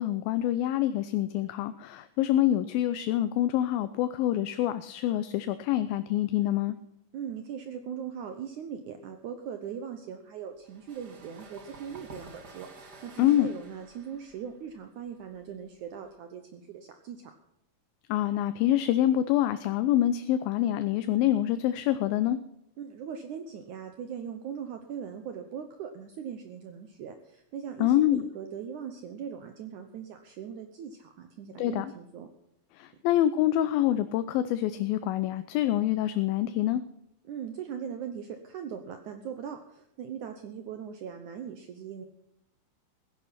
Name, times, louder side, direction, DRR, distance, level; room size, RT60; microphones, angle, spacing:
voice 1, 0.0-6.8 13.2-13.5 18.1-22.4 27.8-28.2 31.6-31.9 32.8-36.8, left 12 dB, 80° left, 11 dB, 2.4 m, -26 dB
voice 2, 7.1-17.3 22.8-32.3 37.2-42.1, right 8 dB, 65° right, 6 dB, 2.1 m, -40 dB
sound 1, 10.6-16.1, right 3 dB, 35° right, 1.9 m, -51 dB
16.0 x 11.0 x 5.8 m, 0.81 s
omnidirectional pair, 4.3 m